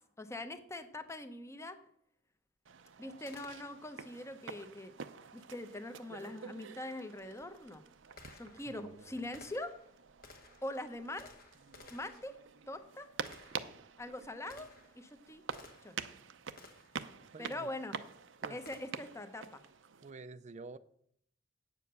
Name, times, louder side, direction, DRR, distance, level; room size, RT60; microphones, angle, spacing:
voice 1, 0.0-1.8 3.0-4.9 5.3-7.8 8.3-9.7 10.6-11.3 11.9-12.3 12.7-13.1 14.0-15.4 15.8-15.9 17.4-18.0 18.5-19.6, left 1 dB, 15° left, 9 dB, 0.9 m, -43 dB
sound 1, 2.7-20.1, right 6 dB, 75° right, 0.7 m, -48 dB
Gunshot gunfire, 3.3-4.1 6.4-6.5 7.2-16.1 16.6-17.0 18.7-19.2, left 3 dB, 50° left, 1.5 m, -58 dB
voice 2, 8.7-9.5 17.3-17.7 18.4-18.6 20.0-20.8, right 3 dB, 40° right, 14 dB, 0.4 m, -49 dB
8.9 x 7.2 x 6.8 m, 0.69 s
head